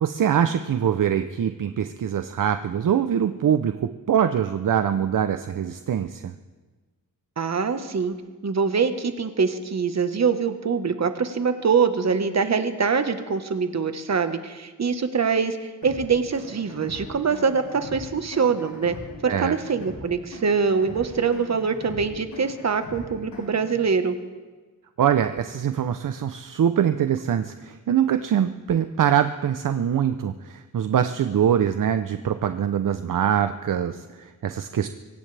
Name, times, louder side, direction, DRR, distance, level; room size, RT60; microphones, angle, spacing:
voice 1, 0.0-6.3 19.3-19.5 25.0-34.9, right 9 dB, 65° right, 9 dB, 0.7 m, -23 dB
voice 2, 7.4-8.1 8.4-19.0 19.2-24.1, right 5 dB, 50° right, 8 dB, 1.4 m, -24 dB
sound 1, 15.8-23.8, left 1 dB, 85° left, 5.7 m, -41 dB
24.0 x 16.5 x 3.4 m, 1.3 s
cardioid pair, 80°, 34 cm